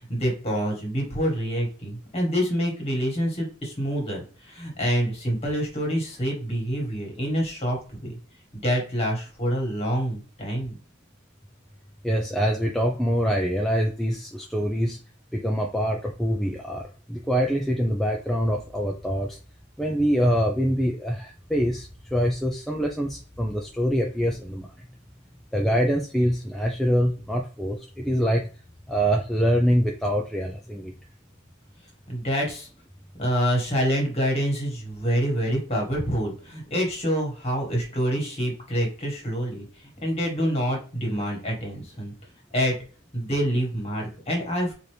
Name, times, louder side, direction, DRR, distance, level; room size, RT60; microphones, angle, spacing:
voice 1, 0.1-8.1 8.6-10.8 32.1-32.7 33.2-42.1 42.5-42.7 43.1-44.7, equal, 30° left, 0 dB, 1.5 m, -26 dB
voice 2, 12.0-15.0 15.3-19.4 19.8-24.9 25.5-28.5 28.9-30.9, equal, ahead, 0 dB, 0.3 m, -25 dB
4.3 x 2.7 x 3.2 m, 0.37 s
head